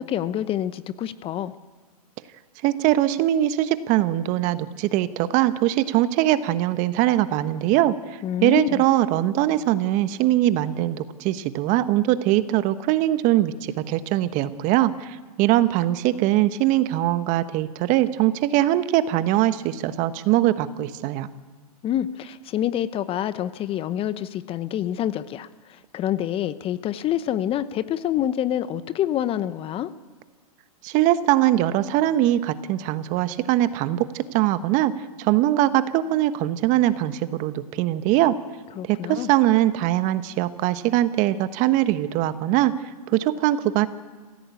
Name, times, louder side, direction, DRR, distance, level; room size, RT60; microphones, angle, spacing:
voice 1, 0.0-1.5 8.2-8.8 21.8-29.9 38.8-39.3, left 11 dB, 30° left, 14 dB, 0.9 m, -27 dB
voice 2, 2.6-7.9 8.4-21.3 30.8-34.9 35.2-38.4 38.9-42.7 43.1-43.9, right 14 dB, 40° right, 12 dB, 1.3 m, -21 dB
26.5 x 16.0 x 8.4 m, 1.4 s
hypercardioid pair, 120°, 20 cm